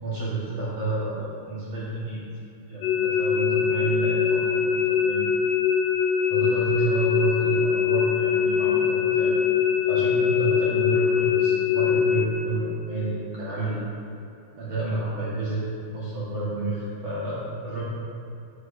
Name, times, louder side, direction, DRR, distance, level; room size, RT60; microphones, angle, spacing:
voice 1, 0.0-2.2 2.7-5.3 6.3-9.4 9.8-13.8 14.6-17.8, right 3 dB, 55° right, -9 dB, 2.3 m, -30 dB
sound 1, 2.8-12.3, left 8 dB, 80° left, 2.1 m, -22 dB
11.0 x 9.9 x 2.6 m, 2.6 s
omnidirectional pair, 3.9 m